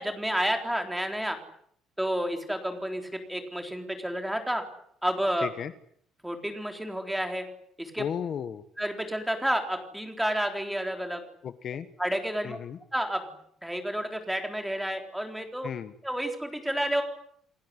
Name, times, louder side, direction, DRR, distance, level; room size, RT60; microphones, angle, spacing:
voice 1, 0.0-1.4 2.0-4.6 5.0-5.5 6.2-7.4 7.8-8.0 8.8-11.2 12.0-12.6 12.9-13.3 13.6-15.7 16.0-17.0, equal, 5° right, 4 dB, 3.9 m, -30 dB
voice 2, 5.4-5.7 8.0-8.6 11.4-11.9 12.4-12.8 15.6-15.9, left 8 dB, 40° left, 12 dB, 1.1 m, -34 dB
29.0 x 19.5 x 9.8 m, 0.68 s
cardioid pair, 170°, 0 cm